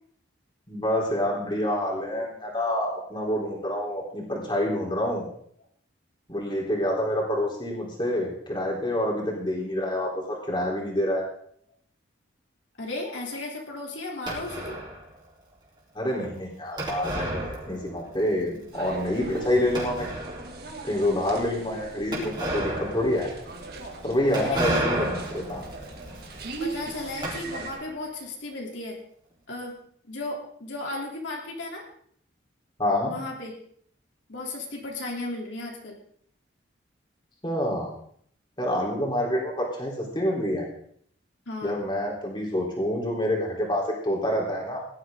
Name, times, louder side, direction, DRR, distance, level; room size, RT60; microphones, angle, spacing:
voice 1, 0.7-5.3 6.3-11.3 15.9-20.1 20.8-23.3 24.0-25.6 32.8-33.2 37.4-37.9 38.6-40.7 41.6-44.8, left 1 dB, 25° left, -2 dB, 3.8 m, -27 dB
voice 2, 12.8-14.8 24.4-24.9 26.6-29.0 29.5-29.7 30.1-31.9 33.0-33.5 34.3-36.0 41.5-41.7, left 2 dB, 70° left, -1 dB, 3.3 m, -35 dB
sound 1, 14.3-15.0 16.8-18.1 18.4-18.5 19.1-19.2 19.7-20.6 22.1-28.0, right 1 dB, 25° right, 4.1 m, -32 dB
sound 2, 18.7-27.7, right 3 dB, 50° right, 2.3 m, -40 dB
17.5 x 12.0 x 3.9 m, 0.62 s
head